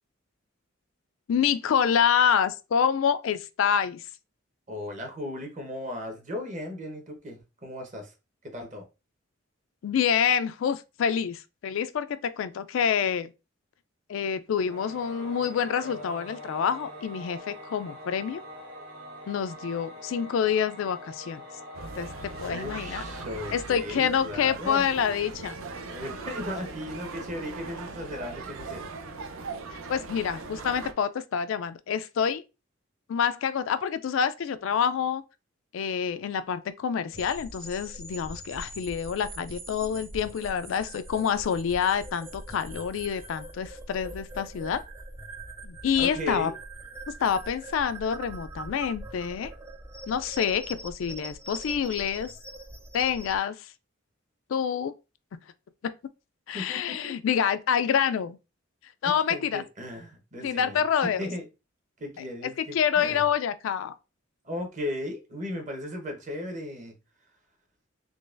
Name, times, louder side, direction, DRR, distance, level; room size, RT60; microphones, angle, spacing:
voice 1, 1.3-4.0 9.8-13.3 14.1-18.4 19.3-21.4 22.0-22.1 22.4-23.0 23.5-25.5 29.9-32.4 33.1-35.2 35.7-44.8 45.6-46.5 47.2-49.5 50.1-52.3 52.9-53.6 54.5-54.9 56.5-58.4 59.0-59.6 60.4-61.3 62.4-63.9, left 7 dB, 75° left, 0.3 m, -27 dB
voice 2, 4.7-8.1 8.4-8.9 22.4-24.9 25.9-28.9 46.0-46.5 56.5-57.1 59.0-60.8 61.2-61.5 62.0-63.3 64.4-66.9, left 1 dB, 35° right, 1.0 m, -36 dB
Singing / Musical instrument, 14.6-24.6, left 1 dB, 70° right, 1.4 m, -44 dB
sound 1, 21.7-30.9, right 4 dB, 85° right, 0.6 m, -39 dB
sound 2, 37.1-53.4, right 1 dB, 10° right, 0.4 m, -42 dB
3.8 x 3.1 x 2.5 m
head